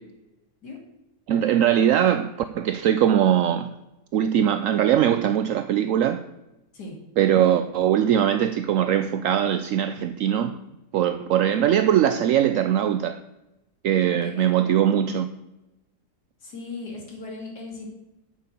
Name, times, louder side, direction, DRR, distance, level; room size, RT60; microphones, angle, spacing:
voice 1, 1.3-3.7 4.1-6.2 7.2-10.6 10.9-13.2 13.8-15.3, right 10 dB, 70° right, 0.8 m, -21 dB
voice 2, 14.0-14.5 16.4-17.9, left 3 dB, 70° left, 3.1 m, -38 dB
9.0 x 6.8 x 8.4 m
omnidirectional pair, 1.8 m